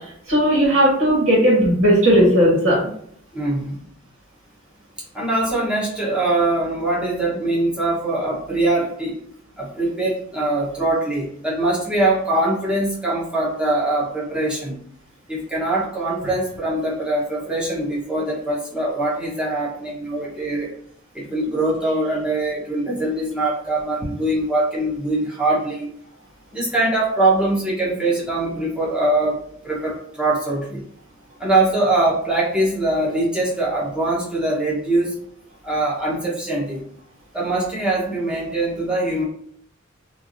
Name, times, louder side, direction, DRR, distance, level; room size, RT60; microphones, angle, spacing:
voice 1, 0.3-2.8, equal, 85° right, -6 dB, 1.3 m, -16 dB
voice 2, 3.3-3.8 5.1-9.2 9.6-14.8 15.3-20.7 21.1-25.9 26.5-29.4 29.6-30.8 31.4-35.1 35.6-36.8 37.3-39.2, right 2 dB, 5° right, -6 dB, 0.9 m, -22 dB
3.3 x 2.5 x 2.6 m, 0.65 s
head